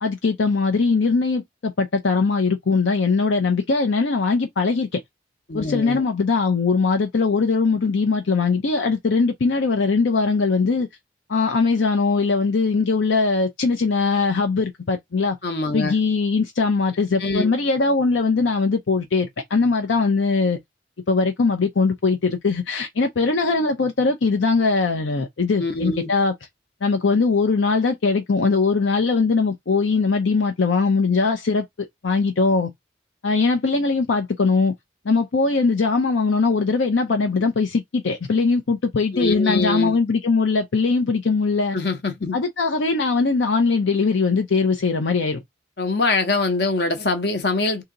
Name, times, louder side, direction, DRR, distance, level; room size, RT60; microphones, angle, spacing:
voice 1, 0.0-5.0 5.5-10.9 11.3-15.4 15.7-20.6 21.1-26.3 26.8-32.7 33.2-34.7 35.0-41.8 42.3-45.4, left 4 dB, 80° left, 0.6 m, -21 dB
voice 2, 5.5-6.0 15.4-15.9 17.2-17.5 25.6-26.1 39.1-40.0 41.7-42.4 45.8-47.8, left 3 dB, 55° left, 0.9 m, -23 dB
2.8 x 2.8 x 3.8 m
head